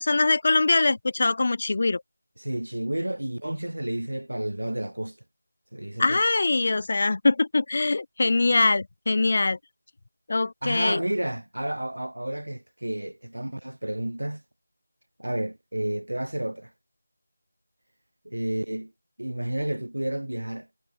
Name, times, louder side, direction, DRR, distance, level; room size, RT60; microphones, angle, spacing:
voice 1, 0.0-2.0 6.0-9.6 10.3-11.0, left 3 dB, 40° left, 0.4 m, -23 dB
voice 2, 2.4-5.2 5.7-6.2 10.6-14.4 15.2-16.7 18.2-18.9 19.2-20.7, right 1 dB, 75° right, 4.4 m, -31 dB
figure-of-eight pair, 165°, 0 cm